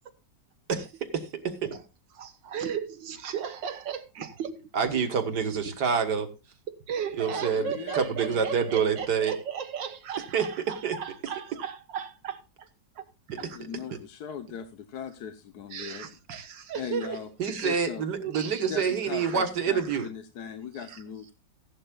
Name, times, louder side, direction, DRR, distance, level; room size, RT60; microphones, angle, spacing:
voice 1, 1.1-1.7 4.7-6.3 7.2-9.3 10.3-11.0 13.3-14.0 17.4-20.1, right 6 dB, 65° right, 2.0 m, -27 dB
voice 2, 2.2-4.6 6.7-12.7 13.0-13.6 15.7-17.8 18.1-18.7 19.2-19.4 20.9-21.0, right 8 dB, 85° right, 2.0 m, -36 dB
voice 3, 7.3-8.4 13.3-16.2 16.7-17.3 17.6-18.0 18.6-21.3, left 8 dB, 65° left, 1.4 m, -39 dB
16.0 x 11.5 x 2.3 m
omnidirectional pair, 1.9 m